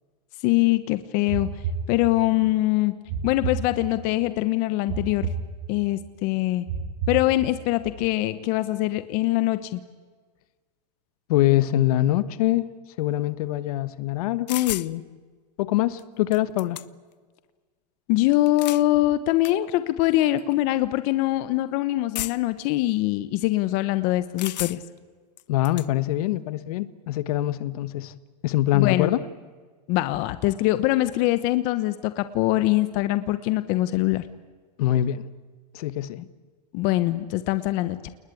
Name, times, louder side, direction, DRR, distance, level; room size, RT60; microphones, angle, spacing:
voice 1, 0.4-1.5 1.9-2.9 3.2-5.3 5.7-6.6 7.1-9.8 18.1-24.8 28.7-29.1 29.9-34.2 36.7-38.1, left 17 dB, 40° left, 13 dB, 1.1 m, -23 dB
sound 1, 1.3-2.5 3.1-4.2 4.9-6.0 6.7-7.8, right 5 dB, 50° right, 5.7 m, -32 dB
voice 2, 11.3-12.7 13.0-15.0 15.6-16.8 25.5-28.1 28.4-29.2 34.8-35.3 35.7-36.2, left 14 dB, 60° left, 16 dB, 1.4 m, -24 dB
sound 2, 14.5-14.9 16.0-16.1 16.3-17.1 18.3-18.9 19.4-19.5 20.4-20.5 22.1-22.6 24.4-25.0 25.4-25.9, left 14 dB, 80° left, 0.9 m, -33 dB
29.5 x 20.5 x 8.5 m, 1.5 s
supercardioid pair, 155°, 21 cm